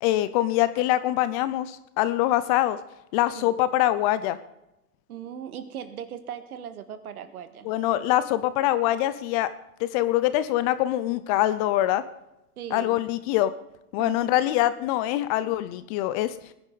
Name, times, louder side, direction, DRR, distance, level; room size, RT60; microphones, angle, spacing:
voice 1, 0.0-2.8 3.1-4.4 7.6-9.5 9.8-12.0 12.7-13.5 13.9-16.3, left 14 dB, 25° left, 14 dB, 0.4 m, -24 dB
voice 2, 5.1-7.7 12.6-13.0 14.0-14.4, right 8 dB, 70° right, 10 dB, 1.8 m, -38 dB
20.0 x 10.5 x 4.0 m, 0.90 s
hypercardioid pair, 120°, 45 cm